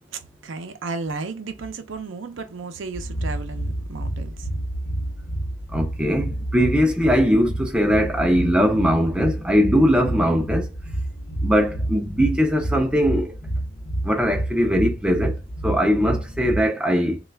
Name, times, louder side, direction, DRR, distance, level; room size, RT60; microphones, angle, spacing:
voice 1, 0.1-4.5, right 4 dB, 70° right, 0.5 m, -33 dB
sound 1, 2.9-16.7, right 1 dB, 60° left, 0.7 m, -29 dB
voice 2, 5.7-10.7 11.4-13.4 14.0-15.3 15.6-17.2, equal, 5° right, 0.4 m, -20 dB
3.1 x 2.3 x 3.3 m
head